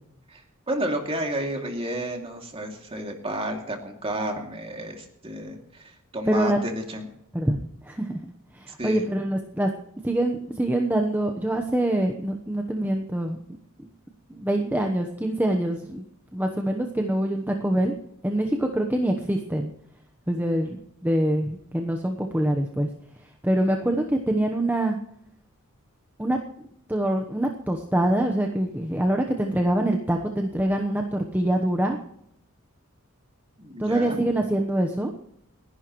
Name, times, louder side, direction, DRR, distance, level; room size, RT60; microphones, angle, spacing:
voice 1, 0.3-7.1 8.8-9.0 33.6-34.2, right 1 dB, 25° right, 2 dB, 2.5 m, -31 dB
voice 2, 6.2-6.6 7.3-8.1 8.5-9.7 10.0-13.4 14.3-16.0 16.3-17.9 18.2-19.7 20.3-22.9 23.4-25.0 26.2-32.0 33.8-35.1, right 1 dB, 10° right, 2 dB, 1.0 m, -25 dB
29.0 x 11.0 x 3.1 m, 0.76 s
head